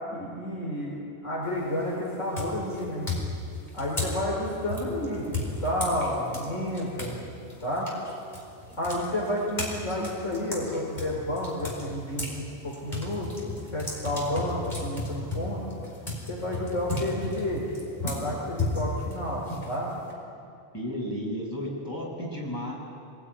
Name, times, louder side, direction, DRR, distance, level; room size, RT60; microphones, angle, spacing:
voice 1, 0.1-3.1 3.7-7.2 7.6-7.9 8.8-15.6 16.3-17.6 18.0-19.9, left 1 dB, 85° left, -4 dB, 4.8 m, -31 dB
sound 1, 1.4-1.8 2.3-7.2 7.5-12.4 12.7-20.1, left 2 dB, 35° left, 5.0 m, -34 dB
voice 2, 20.7-22.7, equal, 15° left, -4 dB, 7.0 m, -34 dB
25.5 x 20.0 x 9.7 m, 2.5 s
omnidirectional pair, 1.2 m